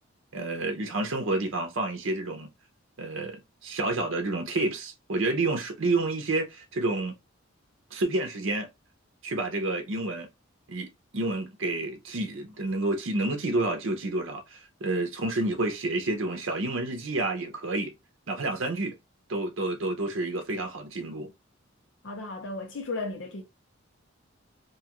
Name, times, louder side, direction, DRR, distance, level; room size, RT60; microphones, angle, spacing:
voice 1, 0.3-2.5 3.0-7.2 7.9-8.7 9.2-10.3 10.7-17.9 18.3-19.0 19.3-21.3, right 2 dB, 75° right, 0.7 m, -29 dB
voice 2, 22.0-23.4, left 3 dB, 65° left, 0.7 m, -35 dB
2.7 x 2.4 x 2.9 m
head